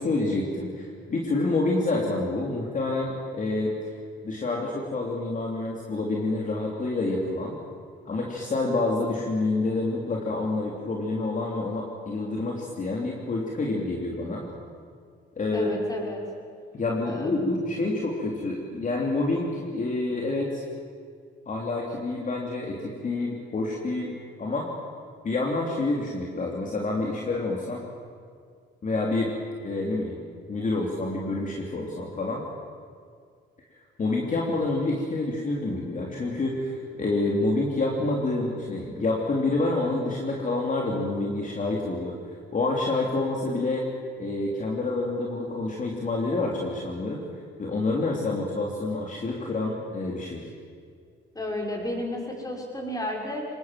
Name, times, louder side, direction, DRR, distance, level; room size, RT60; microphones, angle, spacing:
voice 1, 0.0-4.0 4.2-7.6 8.0-14.4 15.3-15.7 16.7-20.6 21.4-24.1 24.4-24.7 25.2-27.8 28.8-29.3 29.6-30.2 30.5-32.4 33.7-43.8 44.2-47.2 47.6-50.5, left 2 dB, 40° left, -1 dB, 3.4 m, -28 dB
voice 2, 15.5-16.2 17.1-17.4 51.3-53.5, left 1 dB, 20° left, 0 dB, 6.2 m, -32 dB
25.5 x 20.0 x 7.6 m, 2.1 s
cardioid pair, 90°, 20 cm